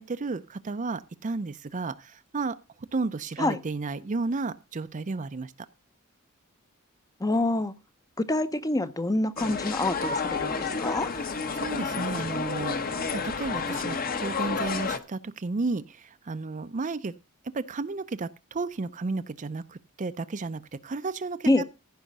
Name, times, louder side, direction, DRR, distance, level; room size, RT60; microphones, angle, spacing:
voice 1, 0.0-2.6 2.9-5.5 11.5-17.1 17.5-21.7, right 3 dB, 35° right, 0.5 m, -33 dB
voice 2, 7.2-7.7 8.2-11.1 21.5-21.6, left 2 dB, 15° left, 0.7 m, -26 dB
sound 1, 9.4-15.0, left 4 dB, 40° left, 1.0 m, -30 dB
15.0 x 5.7 x 5.3 m
head